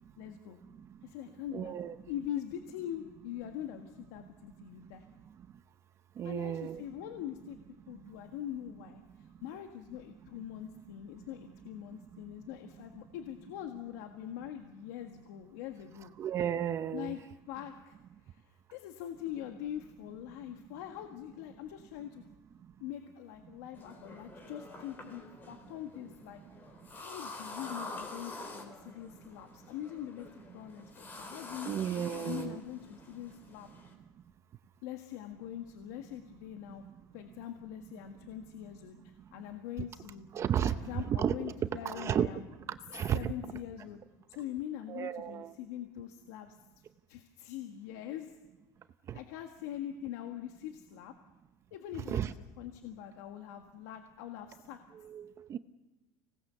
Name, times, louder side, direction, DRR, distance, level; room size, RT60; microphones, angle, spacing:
voice 1, 0.2-0.6 1.0-1.8 2.1-5.1 6.2-7.6 7.9-16.1 16.9-17.2 17.5-22.3 22.8-26.4 26.9-33.7 34.8-36.8 37.1-40.3 40.6-42.5 43.1-44.0 44.3-46.6 47.1-48.4 49.1-51.1 51.7-54.8, left 11 dB, 90° left, 5 dB, 1.7 m, -43 dB
voice 2, 1.5-1.9 6.2-6.8 16.2-17.1 31.7-32.6 40.3-41.5 41.8-42.3 42.9-43.3 44.9-45.5 52.1-52.3 55.0-55.6, right 9 dB, 35° right, 11 dB, 0.7 m, -33 dB
sound 1, 23.7-33.9, left 2 dB, 25° left, 3.8 m, -47 dB
25.0 x 19.0 x 6.9 m, 1.1 s
cardioid pair, 145°, 9 cm